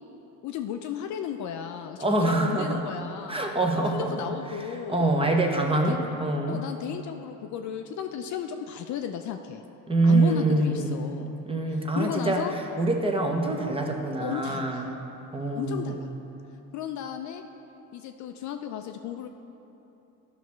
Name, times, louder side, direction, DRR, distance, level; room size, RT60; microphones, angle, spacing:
voice 1, 0.4-3.5 3.9-5.1 5.7-6.0 6.5-9.6 10.0-11.3 11.7-12.6 14.2-14.9 15.5-16.1 16.7-17.4 17.9-19.3, left 9 dB, 50° left, 6 dB, 0.4 m, -34 dB
voice 2, 2.0-2.8 3.3-4.1 4.9-6.6 9.9-11.0 11.5-12.4 12.8-14.9 15.3-15.9, right 2 dB, 15° right, 2 dB, 0.7 m, -25 dB
11.0 x 5.8 x 3.1 m, 3.0 s
supercardioid pair, 95°, 40 cm